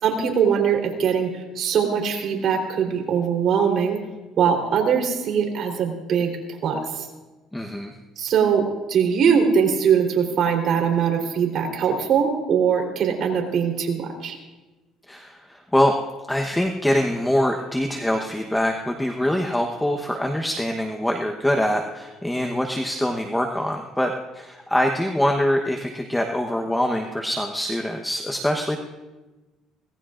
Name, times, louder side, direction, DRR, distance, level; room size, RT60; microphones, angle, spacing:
voice 1, 0.0-4.0 4.4-7.1 8.2-14.4, right 7 dB, 55° right, 1 dB, 3.7 m, -22 dB
voice 2, 7.5-7.9 15.1-15.9 16.3-28.8, left 1 dB, 5° left, 2 dB, 1.1 m, -24 dB
24.5 x 18.5 x 2.6 m, 1.2 s
cardioid pair, 110°, 0 cm